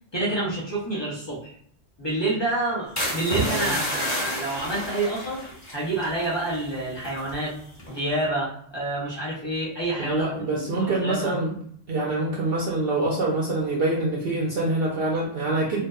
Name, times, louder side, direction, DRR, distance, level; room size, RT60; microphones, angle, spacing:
voice 1, 0.1-1.5 2.0-5.4 5.7-7.5 7.9-11.4, right 2 dB, 35° left, -6 dB, 0.5 m, -28 dB
sound 1, 3.0-6.7 7.0-7.3 7.8-8.1, equal, 15° left, 1.0 m, -30 dB
voice 2, 3.4-3.8 10.0-11.5 11.9-15.9, right 2 dB, 60° right, -4 dB, 0.7 m, -25 dB
2.7 x 2.1 x 2.2 m, 0.62 s
omnidirectional pair, 1.3 m